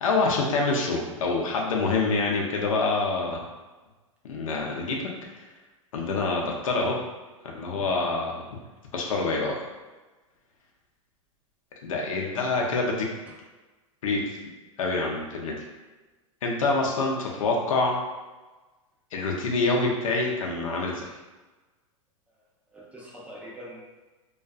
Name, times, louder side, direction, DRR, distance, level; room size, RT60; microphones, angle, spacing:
voice 1, 0.0-3.4 4.3-5.0 5.3-5.4 5.9-6.9 7.5-8.4 8.9-9.5 11.8-13.1 14.0-14.2 14.8-15.5 16.4-18.0 19.1-21.1, left 3 dB, 75° left, -1 dB, 0.6 m, -26 dB
voice 2, 22.7-23.8, equal, 10° right, -4 dB, 0.5 m, -44 dB
2.4 x 2.4 x 2.3 m, 1.2 s
hypercardioid pair, 110°, 17 cm